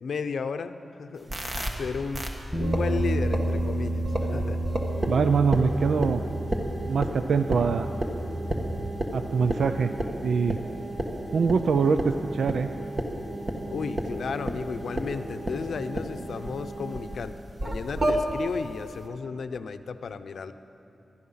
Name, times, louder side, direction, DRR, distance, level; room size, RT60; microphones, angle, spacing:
voice 1, 0.0-1.3 1.7-2.3 2.5-4.6 13.7-17.3 17.6-20.5, left 5 dB, 80° left, 10 dB, 0.6 m, -33 dB
sound 1, 1.3-1.7 2.1-2.3 2.6-3.6 4.0-17.2 17.6-18.1, right 1 dB, 35° right, 1.5 m, -32 dB
Bass guitar, 2.5-8.8, right 1 dB, ahead, 1.4 m, -31 dB
voice 2, 5.1-6.2 6.9-7.9 9.1-9.9 10.2-10.6 11.3-12.7, right 5 dB, 80° right, 9 dB, 0.4 m, -23 dB
20.0 x 12.0 x 5.7 m, 2.9 s
wide cardioid pair, 145°, 0 cm